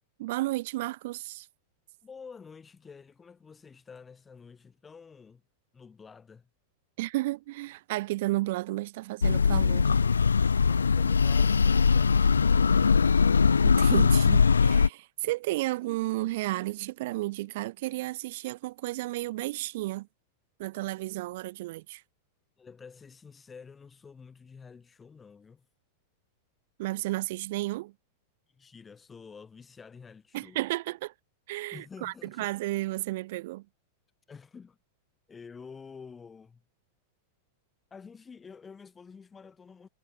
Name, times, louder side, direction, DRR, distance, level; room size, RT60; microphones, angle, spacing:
voice 1, 0.2-1.5 7.0-10.0 13.6-20.1 20.6-22.0 26.8-27.9 30.3-31.1 31.5-33.6, right 18 dB, 55° right, 1.6 m, -32 dB
voice 2, 2.0-5.4 5.7-6.5 22.6-25.6 28.5-30.6 31.7-32.5 34.3-34.8 35.3-36.6 37.9-39.9, left 5 dB, 15° left, 7.9 m, -49 dB
sound 1, 9.2-14.9, left 5 dB, 75° left, 0.4 m, -21 dB
figure-of-eight pair, 90°, 0 cm